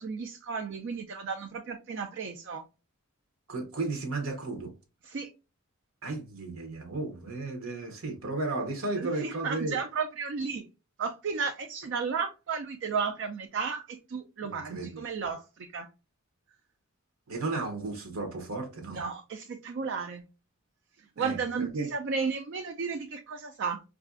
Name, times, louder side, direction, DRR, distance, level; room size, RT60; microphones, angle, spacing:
voice 1, 0.0-2.7 5.0-5.3 9.0-10.7 11.0-15.9 18.9-20.2 21.0-23.8, right 5 dB, 55° right, 0.3 m, -33 dB
voice 2, 3.5-4.7 6.0-9.8 14.4-15.0 17.3-19.0 21.2-21.9, right 3 dB, 70° right, 0.8 m, -34 dB
4.6 x 2.5 x 2.4 m
head